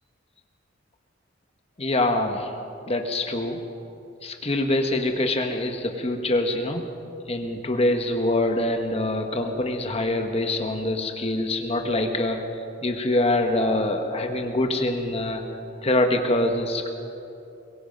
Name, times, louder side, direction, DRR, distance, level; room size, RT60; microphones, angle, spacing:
voice 1, 1.8-2.5 2.9-3.6 4.2-6.8 7.3-12.5 12.8-15.4 15.8-16.9, left 1 dB, 30° left, 4 dB, 1.3 m, -24 dB
23.0 x 22.0 x 5.4 m, 2.7 s
head